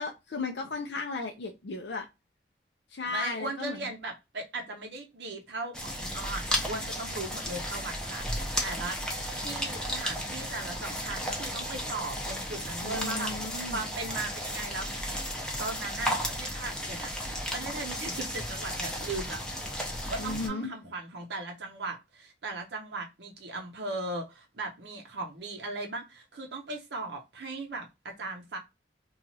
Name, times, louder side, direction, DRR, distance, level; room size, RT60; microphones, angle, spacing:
voice 1, 0.0-2.1 2.9-3.9 12.8-13.8 20.2-20.7, left 3 dB, 65° left, 0.5 m, -35 dB
voice 2, 3.1-15.1 15.6-19.4 20.1-28.6, right 2 dB, 65° right, 0.6 m, -38 dB
sound 1, 5.7-20.5, equal, 5° left, 0.5 m, -34 dB
2.9 x 2.3 x 2.6 m
head